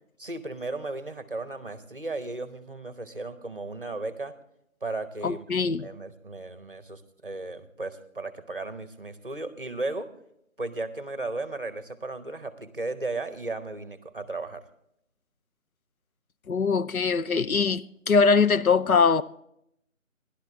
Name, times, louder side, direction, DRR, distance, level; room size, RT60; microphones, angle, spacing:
voice 1, 0.2-4.3 4.8-5.5 5.8-10.1 10.6-14.6, right 2 dB, 40° right, 0.9 m, -35 dB
voice 2, 5.2-5.9 16.5-19.2, left 5 dB, 85° left, 0.7 m, -22 dB
14.0 x 11.5 x 3.6 m
figure-of-eight pair, 170°, 41 cm